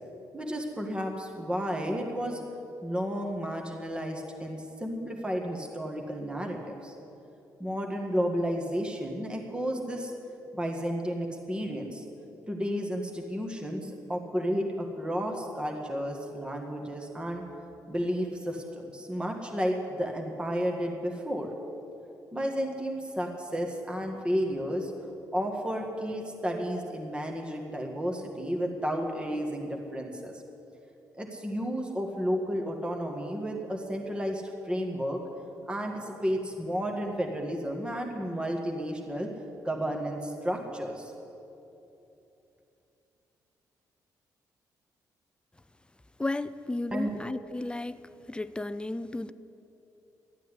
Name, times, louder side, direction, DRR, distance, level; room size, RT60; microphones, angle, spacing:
voice 1, 0.3-2.4 2.8-6.9 7.6-10.1 10.5-12.0 12.5-17.4 17.9-21.5 22.3-24.9 25.3-30.3 31.2-35.2 35.7-39.3 39.6-41.1 46.9-47.2, equal, 15° right, 1 dB, 1.9 m, -32 dB
voice 2, 46.2-48.0 48.3-49.3, left 2 dB, 15° left, 13 dB, 0.5 m, -33 dB
13.0 x 9.1 x 9.8 m, 2.9 s
cardioid pair, 75°, 7 cm